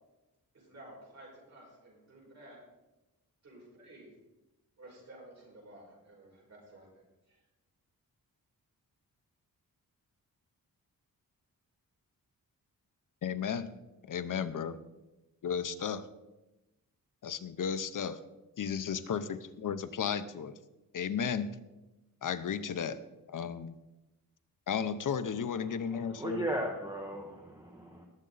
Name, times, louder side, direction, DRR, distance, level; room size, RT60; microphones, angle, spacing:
voice 1, 0.5-2.6 3.4-4.1 4.8-7.4, right 1 dB, 50° right, -3 dB, 5.2 m, -53 dB
voice 2, 13.2-13.7 14.0-14.8 15.4-16.1 17.2-18.2 18.6-20.6 20.9-21.5 22.2-23.0 23.3-23.7 24.7-26.5, left 7 dB, 60° left, 11 dB, 0.8 m, -34 dB
voice 3, 25.3-28.1, right 1 dB, 10° right, 1 dB, 1.0 m, -38 dB
19.0 x 7.6 x 4.0 m, 1.0 s
wide cardioid pair, 160°, 36 cm